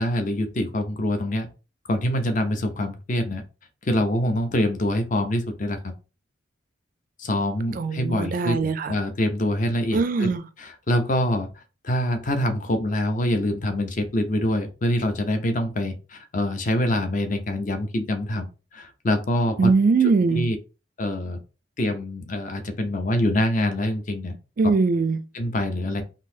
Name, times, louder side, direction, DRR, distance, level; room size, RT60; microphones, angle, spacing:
voice 1, 0.0-1.5 1.9-3.4 3.8-5.9 7.2-10.3 10.6-19.7 20.3-20.6 21.0-21.4 21.8-24.3 25.3-26.0, left 1 dB, 40° left, 0.6 m, -25 dB
voice 2, 7.8-8.9 9.9-10.4 19.6-20.5 24.6-25.2, right 4 dB, 45° right, 0.3 m, -21 dB
3.8 x 2.7 x 2.7 m
head